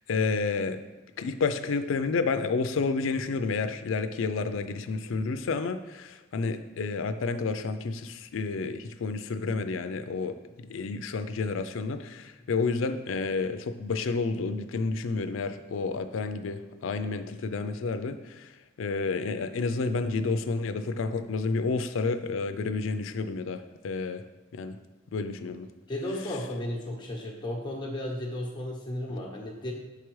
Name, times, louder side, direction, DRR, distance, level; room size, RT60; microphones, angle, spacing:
voice 1, 0.1-0.8 1.2-18.5 18.8-24.2 24.5-24.8 25.1-25.7, left 4 dB, 75° left, 9 dB, 0.4 m, -30 dB
voice 2, 25.9-29.7, left 1 dB, 25° left, -2 dB, 1.0 m, -34 dB
6.6 x 4.8 x 3.1 m, 1.1 s
head